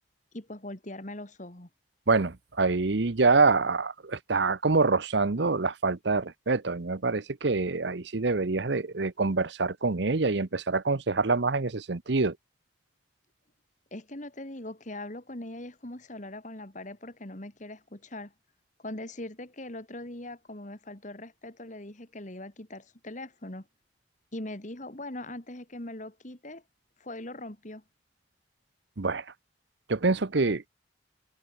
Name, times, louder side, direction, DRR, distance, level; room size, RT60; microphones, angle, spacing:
voice 1, 0.3-1.7 13.9-18.3 18.8-23.7 24.3-26.6 27.0-27.8, left 1 dB, 40° left, 2.3 m, -41 dB
voice 2, 2.1-12.4 29.0-29.2 29.9-30.7, right 3 dB, 65° right, 0.9 m, -26 dB
head